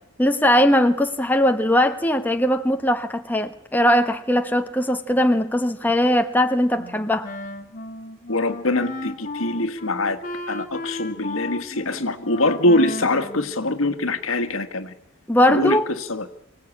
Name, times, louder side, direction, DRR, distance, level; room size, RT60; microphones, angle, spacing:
voice 1, 0.2-7.3 15.3-15.8, left 1 dB, 10° left, 0.9 m, -20 dB
Wind instrument woodwind instrument, 6.7-14.2, left 2 dB, 40° left, 1.6 m, -35 dB
voice 2, 8.3-10.2 10.5-14.9 15.5-16.3, left 2 dB, 80° left, 1.7 m, -23 dB
24.5 x 17.0 x 8.6 m
head